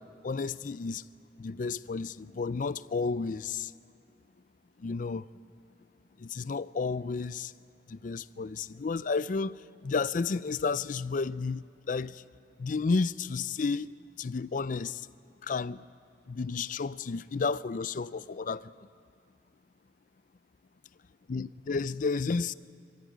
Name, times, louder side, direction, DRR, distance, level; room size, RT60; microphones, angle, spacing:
voice 1, 0.2-1.0 1.4-3.7 4.8-5.2 6.2-7.5 7.9-9.5 9.8-12.1 12.6-13.9 14.2-15.0 15.5-15.8 16.3-18.6 21.3-22.5, left 4 dB, 45° left, 0.4 m, -31 dB
24.5 x 14.0 x 9.2 m
head